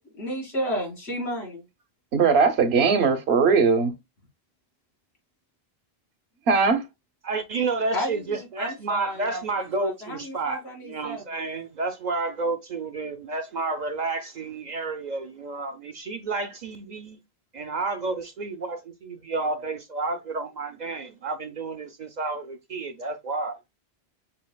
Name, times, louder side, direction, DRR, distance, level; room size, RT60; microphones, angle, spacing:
voice 1, 0.2-1.6 7.9-9.4 9.8-11.2, equal, 85° left, 2.3 m, -32 dB
voice 2, 2.1-3.9 6.5-6.9, right 5 dB, 80° right, 1.0 m, -19 dB
voice 3, 7.2-17.2 17.5-23.6, right 3 dB, 55° right, 0.5 m, -30 dB
6.8 x 2.8 x 2.2 m
omnidirectional pair, 1.1 m